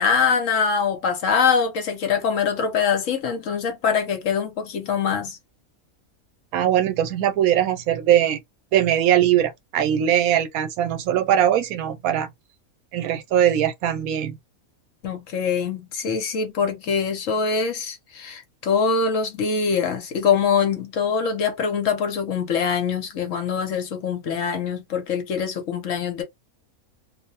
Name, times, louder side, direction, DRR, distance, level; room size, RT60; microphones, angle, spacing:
voice 1, 0.0-5.4 15.0-26.2, left 6 dB, 65° left, 1.0 m, -23 dB
voice 2, 6.5-8.4 8.7-12.3 12.9-14.4, right 10 dB, 80° right, 1.0 m, -21 dB
2.5 x 2.1 x 2.7 m
omnidirectional pair, 1.5 m